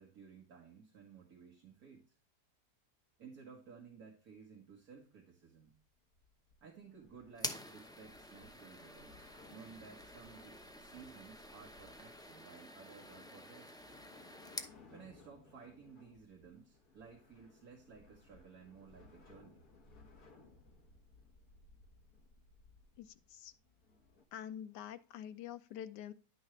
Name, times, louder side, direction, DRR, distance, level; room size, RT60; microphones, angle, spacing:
voice 1, 0.0-2.1 3.2-5.8 6.6-13.8 14.9-19.6, right 6 dB, 60° right, 0 dB, 1.9 m, -56 dB
sound 1, 5.6-24.2, left 3 dB, 65° left, 1.7 m, -63 dB
sound 2, 7.3-14.8, equal, 5° left, 0.3 m, -48 dB
voice 2, 23.0-23.5 24.3-26.1, left 10 dB, 80° left, 10 dB, 1.4 m, -46 dB
10.0 x 6.2 x 3.1 m, 0.36 s
omnidirectional pair, 1.8 m